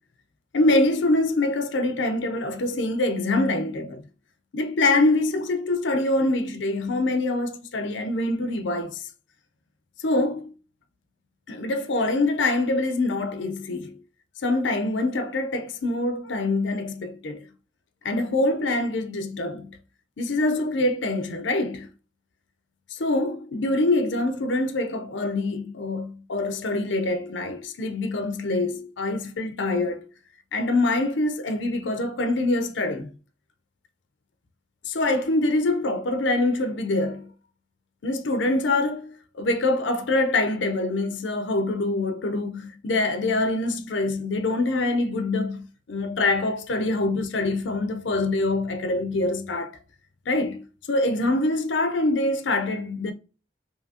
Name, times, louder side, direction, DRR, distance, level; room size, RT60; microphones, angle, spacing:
voice 1, 0.5-4.0 4.5-9.1 10.0-10.5 11.5-14.0 14.4-17.5 18.0-19.8 20.2-21.9 22.9-30.1 30.5-33.1 34.8-37.3 38.0-49.7 50.3-53.1, left 2 dB, 80° left, 0.6 m, -25 dB
4.9 x 2.8 x 2.7 m
head